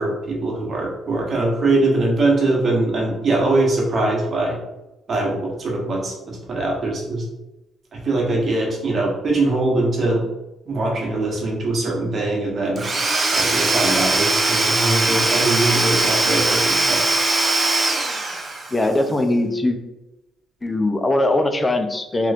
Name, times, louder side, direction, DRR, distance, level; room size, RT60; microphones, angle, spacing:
voice 1, 0.0-4.6 5.1-7.2 7.9-10.2 10.7-12.8 13.3-17.0, right 2 dB, 50° right, -2 dB, 1.1 m, -22 dB
Domestic sounds home sounds / Tools, 12.8-18.9, right 2 dB, 30° right, 0.5 m, -20 dB
voice 2, 18.7-19.8 20.6-22.3, left 1 dB, 20° left, 5 dB, 0.4 m, -20 dB
3.0 x 3.0 x 2.4 m, 0.97 s
cardioid pair, 90°, 0 cm